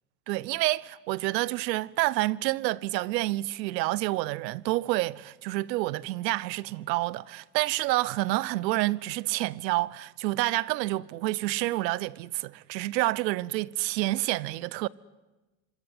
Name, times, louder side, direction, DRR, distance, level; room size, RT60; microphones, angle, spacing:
voice 1, 0.3-14.9, right 18 dB, 80° right, 1.0 m, -28 dB
27.5 x 25.5 x 8.0 m
hypercardioid pair, 95°, 50 cm